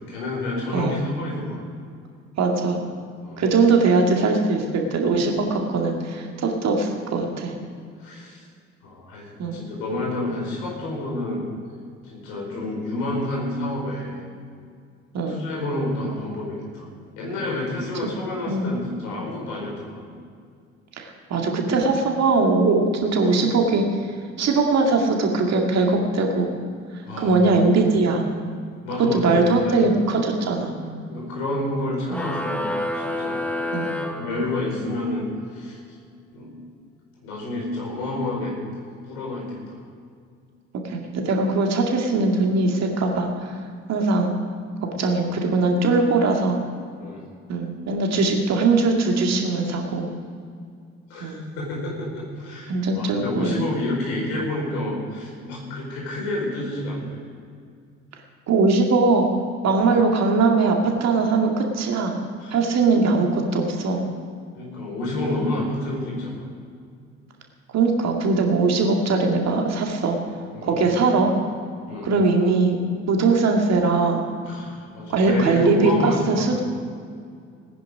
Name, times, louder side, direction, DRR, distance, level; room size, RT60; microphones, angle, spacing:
voice 1, 0.1-1.6 3.2-3.5 8.0-8.4 8.8-11.4 12.0-14.2 15.3-16.9 17.2-20.1 23.2-23.4 27.0-27.4 28.8-29.9 31.1-33.4 34.2-35.8 36.3-36.5 37.2-39.8 45.1-45.2 47.0-47.2 51.1-57.2 59.7-59.9 62.4-62.6 64.5-66.4 70.5-70.8 71.9-72.1 74.4-76.6, left 1 dB, 70° left, -2 dB, 4.6 m, -29 dB
voice 2, 2.4-2.8 3.4-7.5 9.4-9.6 15.1-15.5 18.5-18.8 21.0-23.8 24.4-26.5 27.2-28.2 29.1-30.7 32.1-32.2 33.7-34.0 40.8-43.5 43.9-44.3 44.8-46.6 47.5-50.1 51.2-51.5 52.7-53.6 58.5-59.2 59.6-62.1 62.5-64.0 67.7-70.2 70.6-71.3 72.0-72.8 73.1-74.2 75.1-76.6, right 3 dB, 45° right, 2 dB, 2.3 m, -21 dB
sound 1, 32.1-35.0, left 1 dB, 5° left, 1.1 m, -29 dB
18.5 x 10.0 x 5.1 m, 2.2 s
figure-of-eight pair, 50°, 36 cm